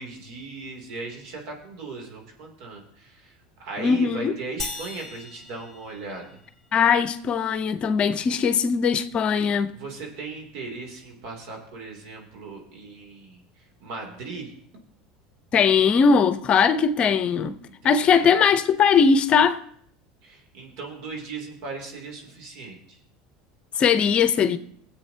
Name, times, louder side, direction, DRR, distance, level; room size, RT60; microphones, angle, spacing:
voice 1, 0.0-6.4 8.2-8.4 9.7-13.4 13.8-14.8 17.7-18.4 20.2-23.0, right 3 dB, 75° right, 2.9 m, -38 dB
voice 2, 3.8-4.3 6.7-9.7 15.5-17.6 17.8-19.6 23.8-24.6, left 6 dB, 40° left, 0.7 m, -20 dB
sound 1, 4.6-6.5, left 3 dB, 10° left, 1.9 m, -37 dB
18.5 x 8.1 x 2.8 m
supercardioid pair, 100°, 3 cm